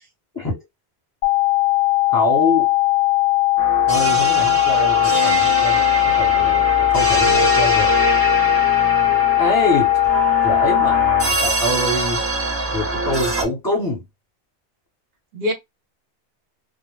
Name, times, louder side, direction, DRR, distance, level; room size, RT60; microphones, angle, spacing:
sound 1, 1.2-11.2, left 19 dB, 70° left, 0.7 m, -18 dB
voice 1, 2.1-2.7 3.9-7.9 9.4-9.9 10.4-12.2 12.7-14.0, left 1 dB, 20° left, 1.0 m, -24 dB
sound 2, 3.6-13.4, right 1 dB, 25° right, 0.3 m, -23 dB
voice 2, 4.3-5.4 15.3-15.5, left 1 dB, 65° right, 1.0 m, -29 dB
2.2 x 2.1 x 3.1 m
omnidirectional pair, 1.1 m